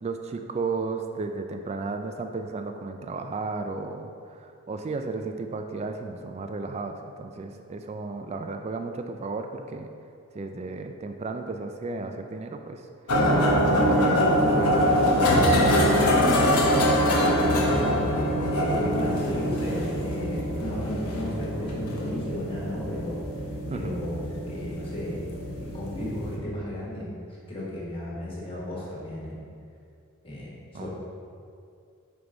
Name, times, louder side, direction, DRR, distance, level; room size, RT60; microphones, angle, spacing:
voice 1, 0.0-9.9 10.3-14.3 14.5-16.7 23.7-23.9 30.7-30.9, right 3 dB, 30° right, 6 dB, 0.3 m, -34 dB
sound 1, 13.1-26.4, equal, 85° left, 0.8 m, -24 dB
voice 2, 17.4-18.0 18.5-23.2 23.7-25.3 25.6-29.4 30.2-30.9, left 1 dB, 25° left, -7 dB, 1.3 m, -34 dB
5.3 x 4.6 x 3.8 m, 2.4 s
head